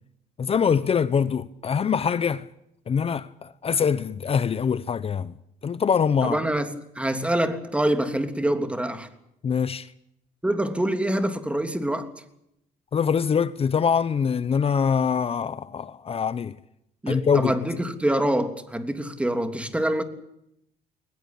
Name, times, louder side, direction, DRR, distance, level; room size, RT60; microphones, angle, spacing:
voice 1, 0.4-2.5 2.9-5.3 5.6-6.4 9.4-9.9 12.9-16.6 17.1-17.5, left 6 dB, 35° left, 0.9 m, -24 dB
voice 2, 6.2-9.1 10.4-12.1 17.0-20.0, right 1 dB, 5° right, 3.2 m, -25 dB
21.5 x 20.5 x 8.5 m
cardioid pair, 110°, 17 cm